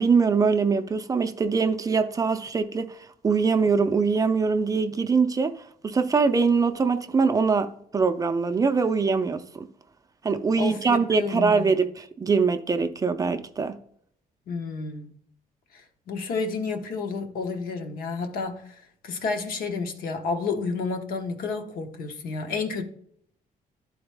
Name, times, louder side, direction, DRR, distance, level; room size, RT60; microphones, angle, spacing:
voice 1, 0.0-9.7 10.2-13.8, right 5 dB, 25° right, 0.4 m, -23 dB
voice 2, 10.6-11.8 14.5-15.1 15.7-22.8, left 4 dB, 75° left, 1.1 m, -31 dB
11.5 x 3.9 x 3.4 m
cardioid pair, 155°, 15 cm